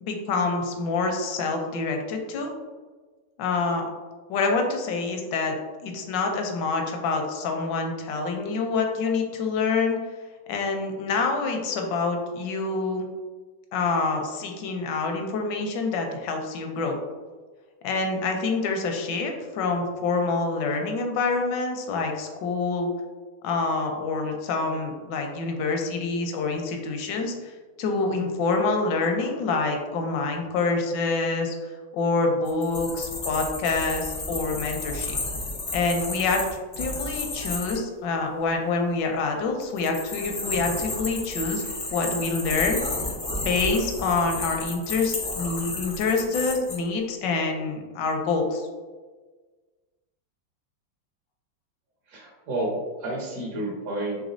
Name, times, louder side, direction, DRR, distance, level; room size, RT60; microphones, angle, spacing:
voice 1, 0.0-2.5 3.4-3.9 4.3-5.5 5.8-10.0 10.5-13.1 13.7-17.0 17.8-22.9 23.4-27.5 27.8-35.2 35.7-36.5 36.8-41.6 41.9-42.8 43.3-48.7, left 3 dB, 80° left, 3 dB, 1.2 m, -26 dB
sound 1, 32.5-37.8 39.6-46.8, left 2 dB, 60° left, 0.4 m, -32 dB
voice 2, 52.1-54.2, right 1 dB, 60° right, -3 dB, 1.1 m, -30 dB
4.0 x 3.2 x 2.5 m, 1.4 s
omnidirectional pair, 2.0 m